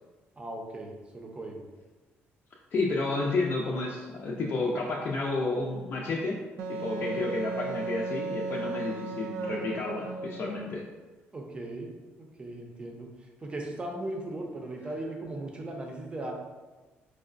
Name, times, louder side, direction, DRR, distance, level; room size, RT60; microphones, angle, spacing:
voice 1, 0.4-1.6 11.3-11.9 12.2-13.1 13.4-16.3, right 1 dB, 25° right, 1 dB, 0.6 m, -38 dB
voice 2, 2.7-6.4 6.7-10.8, left 3 dB, 50° left, -3 dB, 0.4 m, -31 dB
Wind instrument woodwind instrument, 6.6-10.7, right 3 dB, 90° right, 0.3 m, -35 dB
4.6 x 2.1 x 2.5 m, 1.2 s
cardioid pair, 105°, 5 cm